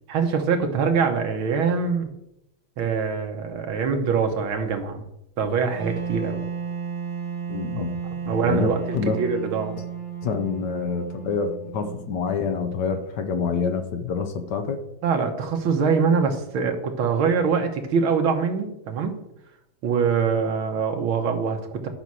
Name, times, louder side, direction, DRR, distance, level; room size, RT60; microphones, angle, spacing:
voice 1, 0.1-2.1 2.8-5.0 5.4-6.4 7.8-7.9 8.3-8.8 9.1-9.8 15.0-19.2 19.8-21.9, right 5 dB, 80° right, 5 dB, 2.0 m, -24 dB
Wind instrument woodwind instrument, 5.8-12.7, right 7 dB, 65° right, 2.0 m, -33 dB
voice 2, 7.5-7.9 8.2-9.2 10.2-14.8, left 5 dB, 60° left, 7 dB, 1.4 m, -27 dB
10.0 x 5.4 x 6.2 m, 0.82 s
omnidirectional pair, 2.2 m